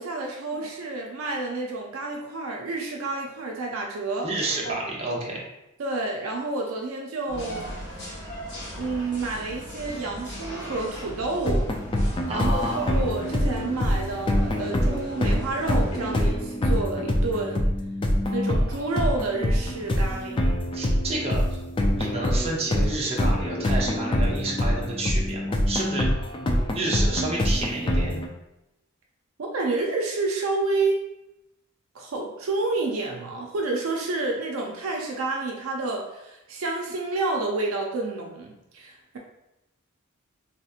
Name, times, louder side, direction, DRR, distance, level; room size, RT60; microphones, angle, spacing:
voice 1, 0.0-4.3 4.6-4.8 5.8-7.6 8.7-11.7 12.0-17.6 18.3-20.4 29.4-31.0 31.9-39.2, right 3 dB, 65° right, 0 dB, 0.4 m, -29 dB
voice 2, 4.2-5.5 12.3-13.0 20.7-21.4 22.0-26.1 26.7-28.2, right 2 dB, 30° right, -3 dB, 0.7 m, -30 dB
sound 1, 7.3-16.3, equal, 55° left, 1.2 m, -39 dB
sound 2, 11.5-28.3, equal, 25° left, 0.3 m, -25 dB
3.5 x 2.8 x 2.4 m, 0.89 s
head